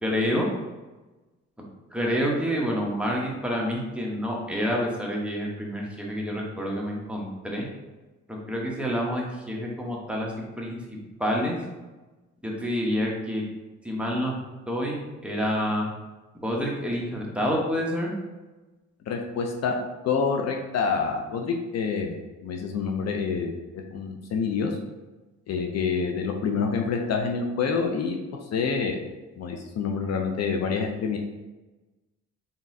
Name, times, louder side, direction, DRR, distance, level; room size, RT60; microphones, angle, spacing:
voice 1, 0.0-0.5 1.9-7.6 8.3-11.6 12.4-13.4 13.8-14.3 14.7-15.9 16.4-18.1, equal, 5° right, -3 dB, 0.9 m, -28 dB
voice 2, 19.1-22.1 22.4-24.7 25.5-28.2 28.5-29.0 29.4-31.2, left 5 dB, 60° left, 3 dB, 0.5 m, -27 dB
4.0 x 3.5 x 2.7 m, 1.1 s
cardioid pair, 90°, 30 cm